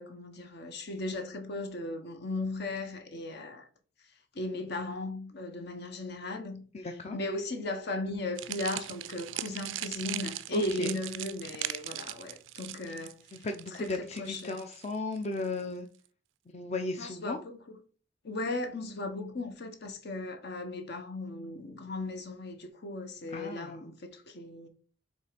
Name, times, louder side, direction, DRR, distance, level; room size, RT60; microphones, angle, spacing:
voice 1, 0.0-3.7 4.3-6.7 7.1-13.2 13.8-14.5 17.0-17.8 18.2-24.7, left 2 dB, 60° left, 1.0 m, -37 dB
voice 2, 6.7-7.2 10.5-11.0 12.8-12.9 13.3-15.9 16.5-17.4 23.3-23.8, left 3 dB, 35° left, 0.6 m, -35 dB
sound 1, 8.4-15.6, right 14 dB, 80° right, 0.4 m, -39 dB
5.4 x 3.5 x 5.1 m
head